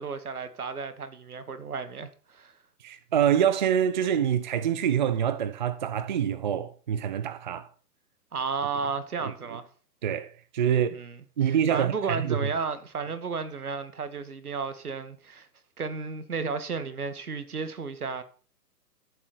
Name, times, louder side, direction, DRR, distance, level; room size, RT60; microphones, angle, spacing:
voice 1, 0.0-2.5 8.3-9.7 10.9-11.2 11.4-15.5 15.8-18.2, right 5 dB, 65° right, 2.2 m, -33 dB
voice 2, 2.8-7.7 9.2-9.3 10.0-11.0 11.4-12.4, right 9 dB, 30° right, 0.6 m, -26 dB
15.0 x 7.8 x 6.0 m
figure-of-eight pair, 125°, 48 cm